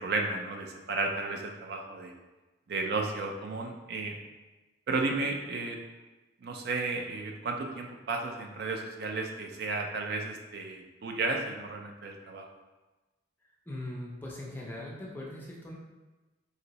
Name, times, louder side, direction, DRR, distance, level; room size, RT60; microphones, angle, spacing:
voice 1, 0.0-2.1 2.7-4.2 4.9-5.8 6.4-12.5, right 3 dB, 55° right, 2 dB, 0.3 m, -33 dB
voice 2, 13.7-15.7, left 1 dB, 10° left, -4 dB, 0.4 m, -40 dB
2.6 x 2.0 x 3.9 m, 1.2 s
head